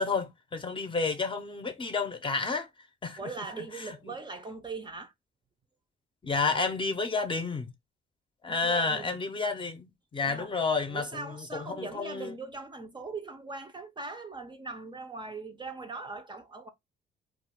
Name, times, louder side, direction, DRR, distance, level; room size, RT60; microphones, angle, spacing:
voice 1, 0.0-2.7 3.0-3.2 6.2-7.7 8.4-12.3, left 4 dB, 25° left, 0.6 m, -30 dB
voice 2, 3.2-5.1 8.5-9.2 10.2-10.6 10.9-16.7, right 3 dB, 25° right, 0.5 m, -40 dB
2.3 x 2.2 x 3.4 m
cardioid pair, 90°, 20 cm